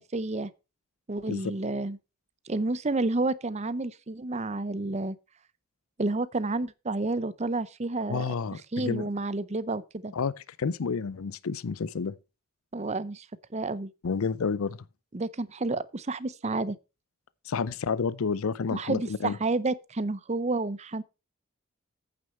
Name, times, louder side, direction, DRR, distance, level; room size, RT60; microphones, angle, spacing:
voice 1, 0.1-0.5 1.1-2.0 2.5-5.2 6.0-8.3 8.7-10.1 12.7-13.3 13.5-13.9 15.1-16.8 18.7-21.0, right 2 dB, 30° right, 0.6 m, -30 dB
voice 2, 8.1-9.1 10.1-10.3 10.6-12.1 14.0-14.8 17.5-19.4, left 5 dB, 75° left, 0.5 m, -30 dB
8.9 x 6.4 x 5.4 m
head